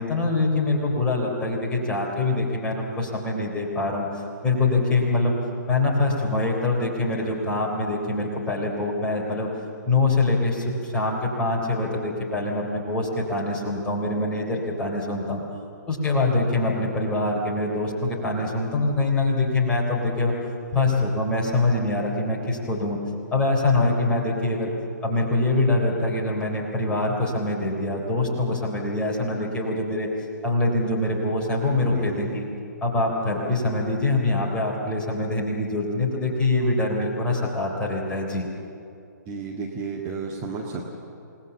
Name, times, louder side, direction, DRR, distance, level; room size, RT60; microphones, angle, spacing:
voice 1, 0.0-5.4 5.7-9.5 9.9-15.4 15.9-20.3 20.7-23.0 23.3-24.7 25.0-30.1 30.4-32.4 32.8-38.5, left 2 dB, 10° left, -2 dB, 3.6 m, -24 dB
voice 2, 31.8-32.4 39.3-41.0, right 4 dB, 20° right, -2 dB, 2.0 m, -33 dB
28.0 x 19.0 x 7.2 m, 2.6 s
figure-of-eight pair, 130°, 10 cm